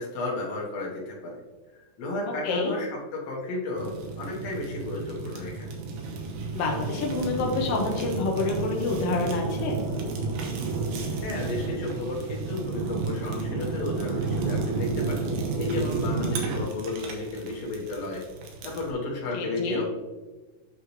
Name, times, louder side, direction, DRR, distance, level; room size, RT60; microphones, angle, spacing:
voice 1, 0.0-1.4 2.0-5.8 11.2-15.3 15.6-18.2 18.6-19.9, left 2 dB, 55° left, -3 dB, 2.1 m, -33 dB
voice 2, 2.3-2.7 6.5-9.8 19.3-19.8, left 3 dB, 80° left, 0 dB, 1.4 m, -28 dB
Fire, 3.8-18.9, right 4 dB, 90° right, 2.9 m, -31 dB
8.5 x 5.8 x 3.2 m, 1.2 s
omnidirectional pair, 4.2 m